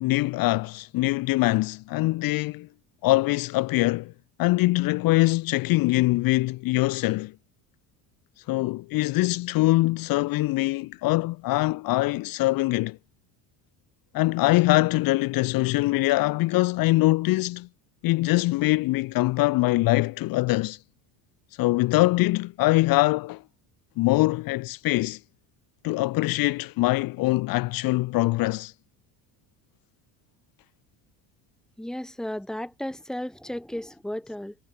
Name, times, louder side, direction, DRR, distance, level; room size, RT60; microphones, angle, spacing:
voice 1, 0.0-2.7 3.0-4.1 4.4-7.3 8.5-13.0 14.1-17.7 18.0-20.8 21.6-23.4 24.0-25.2 25.8-28.7, left 20 dB, 60° left, 0.7 m, -23 dB
voice 2, 31.8-34.5, left 1 dB, ahead, 1.5 m, -34 dB
supercardioid pair, 100°, 40 cm